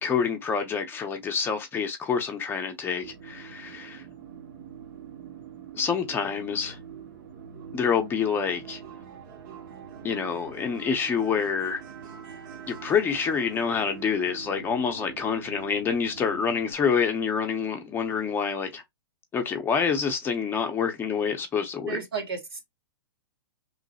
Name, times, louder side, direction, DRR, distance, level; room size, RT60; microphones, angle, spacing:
voice 1, 0.0-4.0 5.7-6.8 7.7-8.8 10.0-11.8 12.7-18.8 19.3-22.0, left 6 dB, 15° left, 0.7 m, -27 dB
sound 1, 3.0-16.7, right 7 dB, 50° right, 0.9 m, -44 dB
voice 2, 21.9-22.6, right 4 dB, 80° right, 1.7 m, -32 dB
3.1 x 2.0 x 4.0 m
hypercardioid pair, 125°, 13 cm